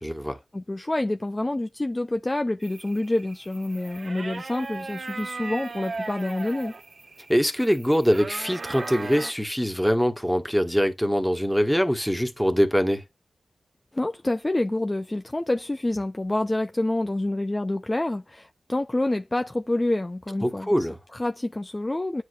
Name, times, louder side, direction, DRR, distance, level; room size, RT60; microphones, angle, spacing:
voice 1, 0.0-0.4 7.3-13.0 20.4-21.0, equal, ahead, 1.6 m, -23 dB
voice 2, 0.5-6.7 13.9-20.7 21.1-22.2, left 1 dB, 25° left, 0.5 m, -27 dB
sound 1, 2.6-9.3, right 3 dB, 60° right, 0.8 m, -38 dB
9.2 x 4.9 x 2.4 m
cardioid pair, 55°, 0 cm